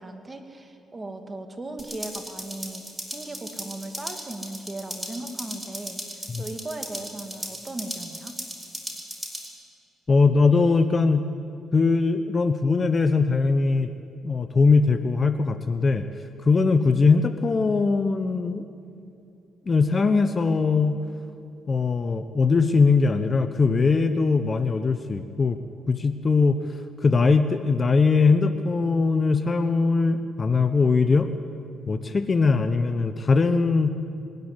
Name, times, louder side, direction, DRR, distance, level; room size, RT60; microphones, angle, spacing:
voice 1, 0.0-8.4, right 2 dB, 25° right, 5 dB, 2.4 m, -37 dB
sound 1, 1.8-9.5, equal, 5° right, 4.2 m, -37 dB
voice 2, 10.1-11.2 11.7-13.9 14.2-16.0 16.4-18.6 19.7-21.0 21.7-25.6 25.9-26.6 27.0-31.3 31.9-33.9, left 4 dB, 35° left, 10 dB, 1.0 m, -21 dB
21.0 x 13.5 x 9.8 m, 2.5 s
cardioid pair, 90°, 0 cm